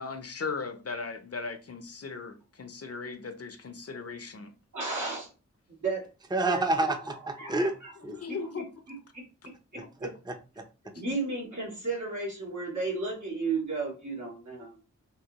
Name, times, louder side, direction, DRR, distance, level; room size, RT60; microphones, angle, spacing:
voice 1, 0.0-4.5 7.4-7.5 8.2-8.7 10.8-10.9, left 4 dB, 50° left, 0.7 m, -37 dB
voice 2, 4.7-5.3 5.7-6.1 6.5-6.6 7.4-7.9 8.3-10.1 11.0-14.8, right 3 dB, 75° right, 1.8 m, -34 dB
voice 3, 6.3-7.7 8.0-8.2 9.8-10.7, right 2 dB, 15° right, 0.6 m, -29 dB
3.7 x 2.8 x 2.9 m
cardioid pair, 45°, 30 cm